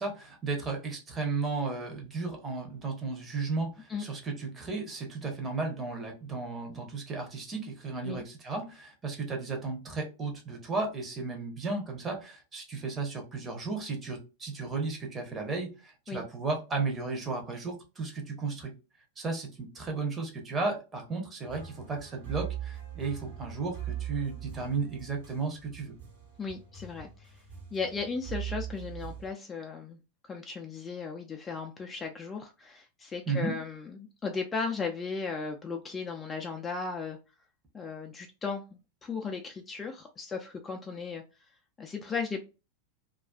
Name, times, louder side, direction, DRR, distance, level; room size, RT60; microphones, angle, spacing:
voice 1, 0.0-18.7 19.2-25.9 33.3-33.5, right 4 dB, 20° right, 3 dB, 0.8 m, -34 dB
sound 1, 21.4-29.3, right 10 dB, 55° right, 1.0 m, -41 dB
voice 2, 26.4-27.4 27.7-30.0 30.3-37.2 37.7-38.6 39.0-41.2 41.8-42.4, left 5 dB, 15° left, 2 dB, 0.4 m, -36 dB
2.4 x 2.3 x 2.2 m, 0.30 s
figure-of-eight pair, 90°, 0 cm